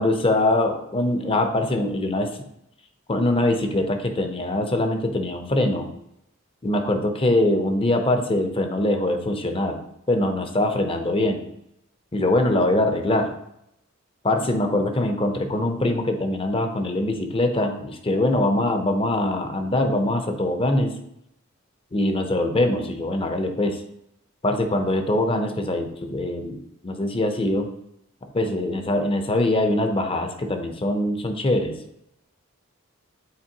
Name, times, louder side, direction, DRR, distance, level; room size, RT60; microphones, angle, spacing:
voice 1, 0.0-2.4 3.1-5.9 6.6-9.8 10.1-11.5 12.1-13.4 14.2-21.0 21.9-23.8 24.4-27.7 28.3-31.8, left 1 dB, 25° left, 5 dB, 0.7 m, -23 dB
8.7 x 4.1 x 2.9 m, 0.80 s
head